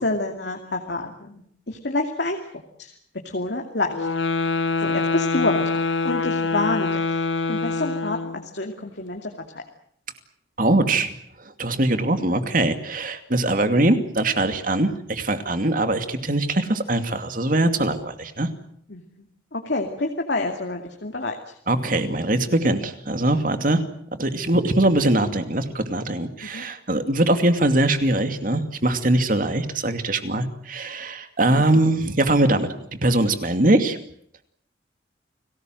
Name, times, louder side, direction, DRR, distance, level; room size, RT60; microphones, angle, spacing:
voice 1, 0.0-2.4 2.8-2.9 3.2-4.1 4.8-5.6 6.0-7.1 7.5-8.2 8.5-9.6 18.9-19.2 19.5-21.3 26.4-26.6 31.6-31.7, left 2 dB, 65° left, 3 dB, 2.6 m, -28 dB
sound 1, 3.9-8.5, left 3 dB, 85° left, 1.0 m, -24 dB
voice 2, 10.6-11.1 11.6-18.5 21.7-23.8 24.2-34.0, right 1 dB, 45° right, 8 dB, 2.5 m, -22 dB
30.0 x 19.5 x 7.8 m, 0.67 s
head